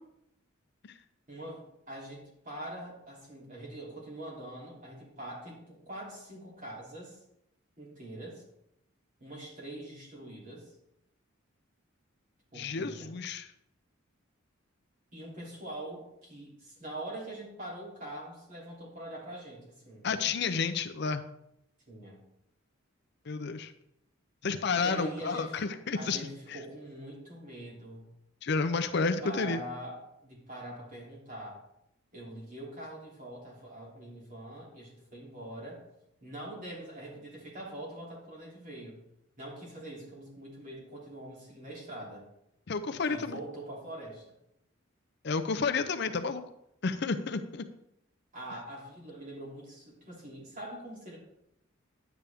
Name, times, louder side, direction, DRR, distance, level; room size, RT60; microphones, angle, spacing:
voice 1, 1.3-7.2 7.8-8.4 9.2-10.7 12.5-13.1 15.1-20.1 21.9-22.2 24.7-28.1 29.0-31.6 32.1-35.8 36.2-39.0 39.4-42.2 43.1-44.2 48.3-51.2, right 1 dB, 40° right, -4 dB, 3.1 m, -43 dB
voice 2, 12.5-13.5 20.0-21.2 23.3-23.7 24.4-26.2 26.5-26.6 28.4-29.6 42.7-43.4 45.2-46.4 46.8-47.6, left 4 dB, 55° left, 8 dB, 0.5 m, -31 dB
10.0 x 8.2 x 3.5 m, 0.80 s
head